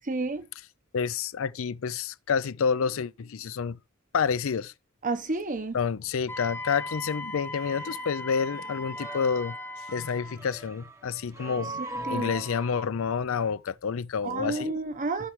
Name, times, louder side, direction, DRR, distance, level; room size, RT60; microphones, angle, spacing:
voice 1, 0.1-0.5 5.0-5.8 11.8-12.4 14.2-15.3, right 3 dB, 40° right, 0.9 m, -31 dB
voice 2, 0.9-3.8 4.1-4.7 5.7-9.6 9.9-11.8 12.1-14.8, left 6 dB, 65° left, 0.5 m, -29 dB
Wind instrument woodwind instrument, 6.3-10.4, left 2 dB, 10° left, 1.1 m, -38 dB
sound 1, 6.3-12.9, right 1 dB, 15° right, 0.9 m, -41 dB
14.5 x 5.9 x 3.1 m
head